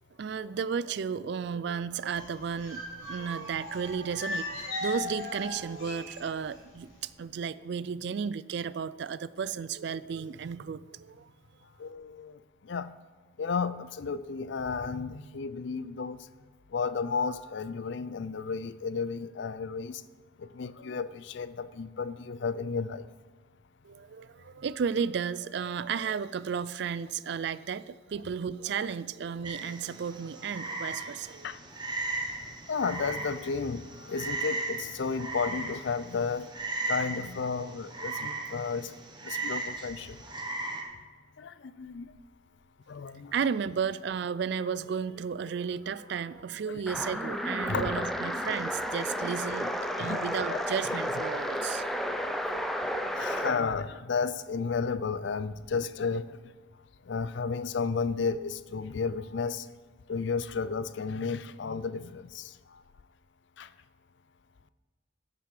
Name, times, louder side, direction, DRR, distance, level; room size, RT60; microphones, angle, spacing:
voice 1, 0.2-11.3 23.8-31.5 43.3-51.8, right 6 dB, 60° right, 17 dB, 0.3 m, -33 dB
sound 1, 2.1-6.6 6.9-7.1, left 2 dB, 80° left, 2.8 m, -38 dB
voice 2, 11.8-12.9 13.4-16.3 16.7-20.0 20.4-23.1 31.4-31.6 32.7-36.5 36.9-38.9 39.2-40.2 41.4-42.1 42.9-43.3 46.7-46.8 47.7-47.9 50.0-50.6 53.1-56.4 57.1-59.7 60.1-62.8 63.6-63.7, left 5 dB, 65° left, 15 dB, 0.4 m, -33 dB
Frog, 29.4-40.8, right 2 dB, 20° right, 1.0 m, -37 dB
sound 2, 46.9-53.6, equal, ahead, 0.6 m, -32 dB
13.0 x 6.8 x 4.9 m, 1.4 s
head